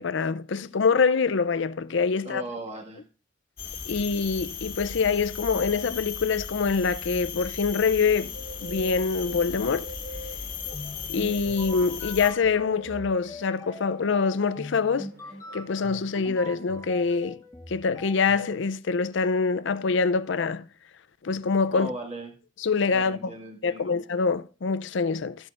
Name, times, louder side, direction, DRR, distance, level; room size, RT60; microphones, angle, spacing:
voice 1, 0.0-2.4 3.9-8.3 8.6-9.9 11.1-15.1 15.5-17.4 17.7-20.7 21.2-21.9 22.6-23.3 23.6-25.4, left 5 dB, 65° left, 0.5 m, -25 dB
voice 2, 2.2-3.0 21.7-22.3 22.9-23.9, right 1 dB, 35° right, 1.8 m, -37 dB
sound 1, 3.6-12.3, left 6 dB, 45° left, 1.7 m, -36 dB
Bird, 8.2-16.5, equal, 85° right, 3.6 m, -46 dB
sound 2, 10.7-18.6, left 1 dB, 15° left, 1.0 m, -42 dB
14.5 x 7.7 x 2.5 m
head